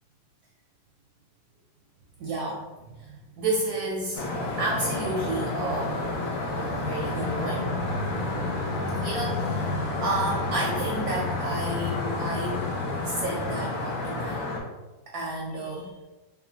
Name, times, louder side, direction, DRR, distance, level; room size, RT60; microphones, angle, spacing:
voice 1, 2.2-4.3 4.6-6.0 6.8-7.7 9.0-12.7 13.0-14.5 15.1-15.9, right 2 dB, 70° right, -2 dB, 1.0 m, -31 dB
sound 1, 4.1-14.6, left 2 dB, 70° left, 0.8 m, -30 dB
4.1 x 2.2 x 2.8 m, 1.1 s
omnidirectional pair, 2.1 m